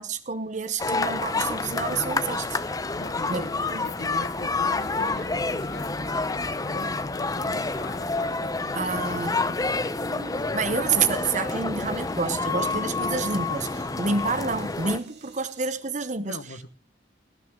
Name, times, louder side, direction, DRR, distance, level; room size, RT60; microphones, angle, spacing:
voice 1, 0.0-2.6 3.3-3.8 8.7-9.4 10.5-16.4, right 4 dB, 40° right, 0.9 m, -28 dB
sound 1, 0.8-15.0, left 3 dB, 20° left, 0.7 m, -28 dB
sound 2, 0.8-15.7, right 1 dB, 65° right, 2.5 m, -50 dB
voice 2, 3.0-9.1 9.5-9.8 16.2-16.7, left 2 dB, 75° left, 1.3 m, -41 dB
Thunder, 4.4-11.8 12.9-13.0, equal, 10° right, 6.5 m, -57 dB
19.0 x 13.0 x 3.7 m
head